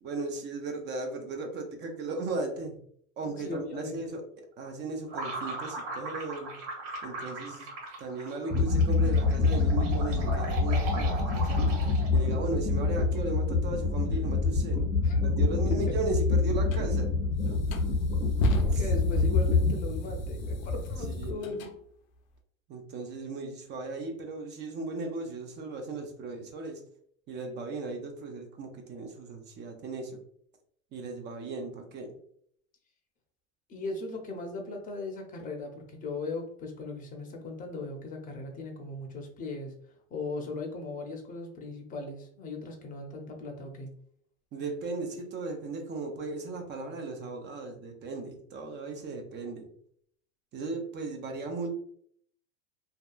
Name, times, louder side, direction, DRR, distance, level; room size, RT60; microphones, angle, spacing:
voice 1, 0.0-2.8 3.2-6.5 7.0-7.7 8.0-11.7 12.1-14.8 15.2-17.1 18.7-18.9 21.0-21.4 22.7-26.8 27.3-30.2 30.9-32.2 44.5-49.7 50.5-51.7, right 3 dB, 30° right, 4 dB, 0.5 m, -36 dB
voice 2, 3.4-4.0 15.0-15.2 18.6-21.7 33.7-39.7 40.1-43.9, left 3 dB, 20° left, 2 dB, 0.6 m, -38 dB
sound 1, 5.1-12.3, right 2 dB, 65° right, 1.3 m, -39 dB
sound 2, 8.5-19.7, left 3 dB, 10° right, 0.8 m, -26 dB
sound 3, 16.7-16.8 17.4-21.7, left 1 dB, 90° left, 0.6 m, -32 dB
2.7 x 2.2 x 2.3 m, 0.65 s
hypercardioid pair, 110°, 40 cm